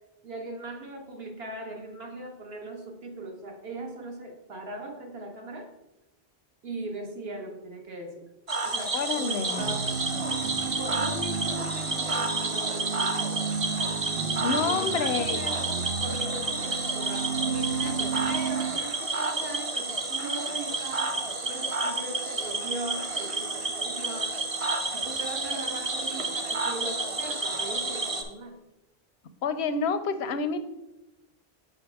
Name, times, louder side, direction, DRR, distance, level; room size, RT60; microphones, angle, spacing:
voice 1, 0.2-5.7 6.6-8.2 8.6-10.0 10.6-13.3 14.5-24.4 24.9-28.6, right 2 dB, 70° right, 2 dB, 1.3 m, -39 dB
Cricket / Frog, 8.5-28.2, right 3 dB, 35° right, 0.6 m, -30 dB
voice 2, 8.9-9.7 14.4-15.4 29.4-30.6, left 5 dB, 85° left, 10 dB, 0.8 m, -28 dB
sound 1, 9.6-18.7, right 6 dB, 85° right, 1.1 m, -33 dB
6.3 x 5.5 x 3.5 m, 0.97 s
omnidirectional pair, 1.1 m